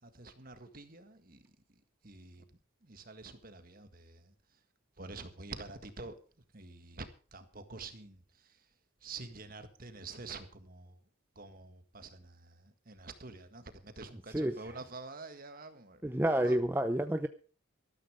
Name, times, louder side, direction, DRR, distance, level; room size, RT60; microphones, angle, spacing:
voice 1, 0.0-2.4 2.8-4.6 5.0-6.1 6.5-8.7 9.0-11.0 11.3-16.6, right 3 dB, 45° right, 9 dB, 1.7 m, -48 dB
voice 2, 16.0-17.3, right 1 dB, 10° right, 8 dB, 0.6 m, -29 dB
13.0 x 13.0 x 4.9 m, 0.38 s
head